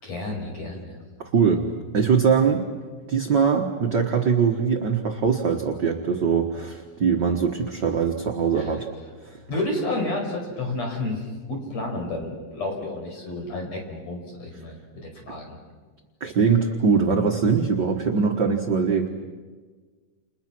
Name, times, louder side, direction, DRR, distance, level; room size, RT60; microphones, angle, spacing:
voice 1, 0.0-1.0 8.6-8.7 9.5-14.8 15.0-15.6, left 2 dB, 50° left, 2 dB, 6.4 m, -30 dB
voice 2, 1.3-1.6 1.9-2.6 3.1-8.9 16.2-19.1, right 6 dB, 45° right, 2 dB, 1.5 m, -22 dB
30.0 x 29.5 x 6.2 m, 1.5 s
omnidirectional pair, 3.8 m